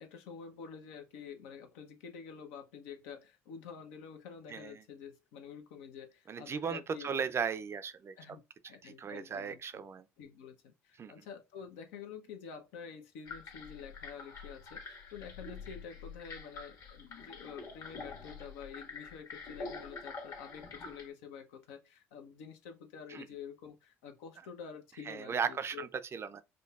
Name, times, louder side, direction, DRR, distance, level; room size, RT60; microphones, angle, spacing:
voice 1, 0.0-7.2 8.2-9.8 10.2-25.8, left 6 dB, 75° left, 0.8 m, -48 dB
voice 2, 4.5-4.8 6.3-8.2 8.8-10.1 11.0-11.3 23.1-23.2 25.1-26.4, right 6 dB, 35° right, 0.5 m, -37 dB
sound 1, 13.3-21.1, left 4 dB, 50° left, 1.3 m, -46 dB
5.1 x 2.3 x 2.4 m
hypercardioid pair, 65°, 7 cm